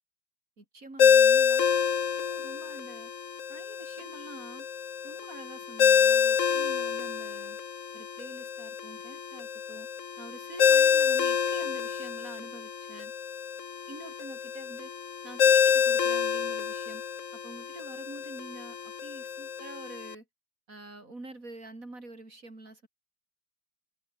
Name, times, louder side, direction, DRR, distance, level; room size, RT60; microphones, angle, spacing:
voice 1, 0.6-1.7 2.2-3.1 3.5-4.7 5.0-7.6 7.9-9.9 10.2-13.1 13.9-14.9 15.2-17.0 17.3-20.2 20.7-22.9, right 2 dB, 45° right, 5.6 m, -46 dB
Ringtone, 1.0-20.1, left 7 dB, 45° left, 1.4 m, -27 dB
omnidirectional pair, 2.0 m